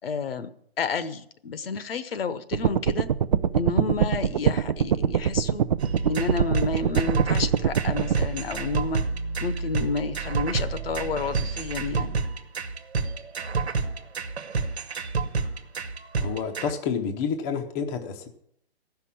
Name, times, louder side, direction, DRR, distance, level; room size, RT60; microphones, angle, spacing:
voice 1, 0.0-0.5 0.8-3.1 3.5-5.7 6.1-9.0 9.4-12.1, left 4 dB, 60° left, 13 dB, 1.0 m, -30 dB
sound 1, 2.5-8.3, right 8 dB, 40° right, 0.5 m, -24 dB
sound 2, 5.8-16.7, right 4 dB, 80° right, 1.4 m, -29 dB
voice 2, 16.2-18.3, left 6 dB, 20° left, 4 dB, 0.7 m, -29 dB
14.5 x 5.9 x 8.4 m, 0.69 s
hypercardioid pair, 150°, 32 cm